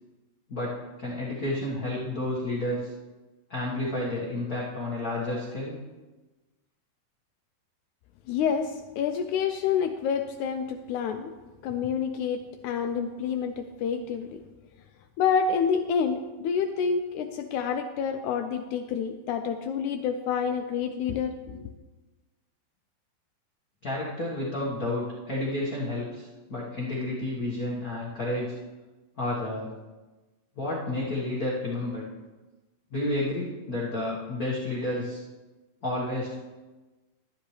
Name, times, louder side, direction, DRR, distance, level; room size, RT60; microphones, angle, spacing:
voice 1, 0.5-2.9 3.5-5.7 23.8-28.5 29.2-29.7 30.6-32.1 32.9-35.2 35.8-36.4, left 1 dB, 45° left, -6 dB, 1.1 m, -31 dB
voice 2, 8.3-11.3 11.6-14.4 15.2-21.7, left 6 dB, 85° left, 6 dB, 1.7 m, -28 dB
12.5 x 10.5 x 3.2 m, 1.2 s
omnidirectional pair, 4.0 m